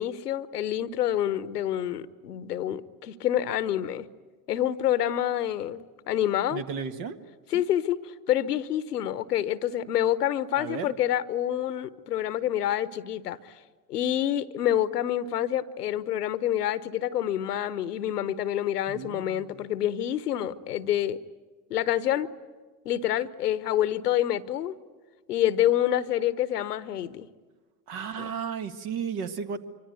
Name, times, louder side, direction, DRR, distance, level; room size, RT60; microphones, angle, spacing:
voice 1, 0.0-4.1 4.5-6.6 7.5-13.5 13.9-21.2 21.7-22.3 22.8-24.7 25.3-27.3 28.2-28.3, left 11 dB, 70° left, 16 dB, 1.1 m, -27 dB
voice 2, 6.5-7.2 7.5-7.6 10.6-10.9 18.9-19.6 27.9-29.6, right 6 dB, 50° right, 9 dB, 1.7 m, -34 dB
25.5 x 24.5 x 9.5 m, 1.3 s
figure-of-eight pair, 70°, 49 cm